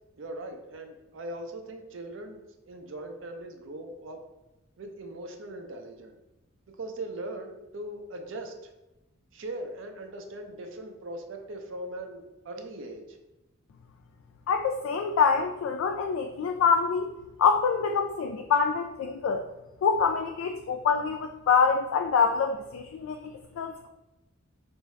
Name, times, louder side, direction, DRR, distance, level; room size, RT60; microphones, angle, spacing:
voice 1, 0.2-2.4 2.7-4.2 4.8-6.2 6.7-8.7 9.3-13.2, right 1 dB, 65° right, 4 dB, 0.5 m, -40 dB
voice 2, 14.5-17.1 17.4-19.4 19.8-23.9, left 5 dB, 85° left, 5 dB, 0.3 m, -25 dB
4.6 x 2.6 x 3.1 m, 0.99 s
head